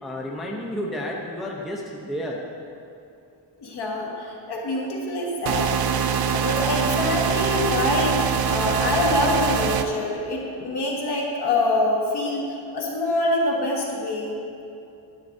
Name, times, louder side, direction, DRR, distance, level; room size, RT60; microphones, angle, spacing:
voice 1, 0.0-2.4, equal, ahead, -2 dB, 0.5 m, -31 dB
voice 2, 3.6-5.7 6.2-14.4, left 2 dB, 55° left, -2 dB, 1.5 m, -25 dB
sound 1, 5.5-9.8, right 7 dB, 55° right, 0.5 m, -24 dB
10.5 x 8.6 x 2.6 m, 2.7 s
wide cardioid pair, 145°, 47 cm